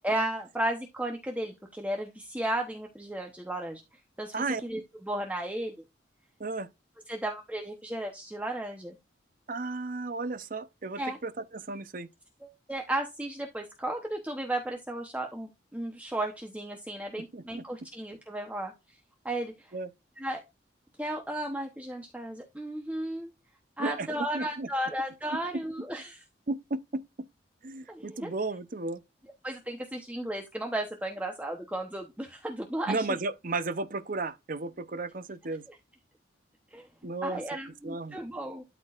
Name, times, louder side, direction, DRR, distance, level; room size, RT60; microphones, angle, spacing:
voice 1, 0.0-4.3 4.6-5.7 7.1-9.0 11.0-11.2 12.4-19.0 19.2-19.7 20.2-20.4 21.0-23.3 23.8-26.2 27.9-28.3 29.4-33.1 35.7-35.8 36.7-36.9 37.2-38.6, right 1 dB, 10° right, 0.9 m, -34 dB
voice 2, 9.5-12.1 17.3-17.6 19.7-19.9 23.8-24.7 26.5-27.3 27.6-29.0 32.9-35.6 37.0-37.4 37.8-38.2, right 3 dB, 45° right, 0.7 m, -34 dB
12.5 x 4.5 x 2.4 m
head